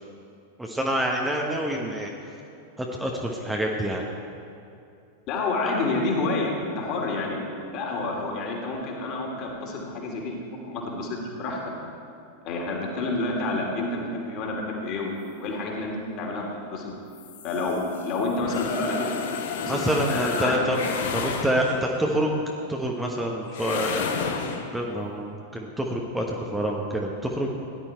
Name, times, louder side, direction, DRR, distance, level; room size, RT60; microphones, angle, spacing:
voice 1, 0.6-2.1 2.8-4.0 19.7-20.8 21.1-22.4 22.7-24.3 24.7-27.5, right 1 dB, 5° right, -1 dB, 1.3 m, -27 dB
voice 2, 5.3-7.4 7.7-11.7 12.4-16.9 17.4-19.1 19.6-19.8 20.1-20.6 21.2-21.4, left 2 dB, 40° left, -1 dB, 2.9 m, -29 dB
sound 1, 17.1-22.0 23.5-24.7, left 5 dB, 60° left, 1.2 m, -31 dB
17.0 x 11.0 x 4.5 m, 2.6 s
figure-of-eight pair, 90°, 0 cm